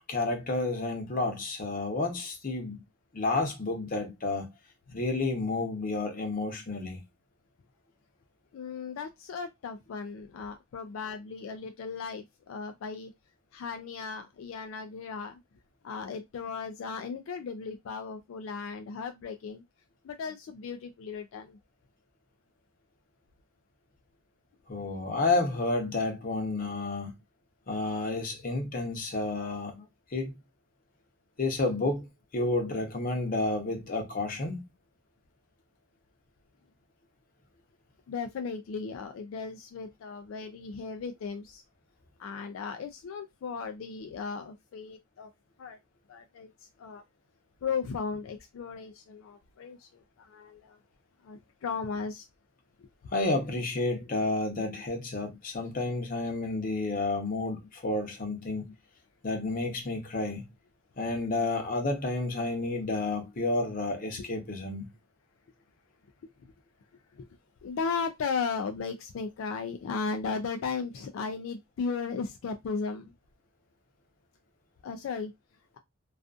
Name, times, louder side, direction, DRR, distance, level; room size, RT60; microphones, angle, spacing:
voice 1, 0.1-2.8 3.1-4.5 4.9-7.0 24.7-27.1 27.7-29.8 30.1-30.3 31.4-32.1 32.3-34.6 53.1-58.7 59.2-60.4 61.0-64.9, left 2 dB, 45° left, 0.7 m, -30 dB
voice 2, 8.5-13.1 13.5-15.4 15.8-19.6 20.0-21.6 38.1-41.6 42.2-45.3 45.6-45.8 46.1-47.0 47.6-50.8 51.2-52.3 52.8-52.9 64.2-64.3 66.4-66.5 67.2-67.3 67.6-73.1 74.8-75.3, left 5 dB, 80° left, 0.3 m, -36 dB
2.4 x 2.4 x 2.4 m
head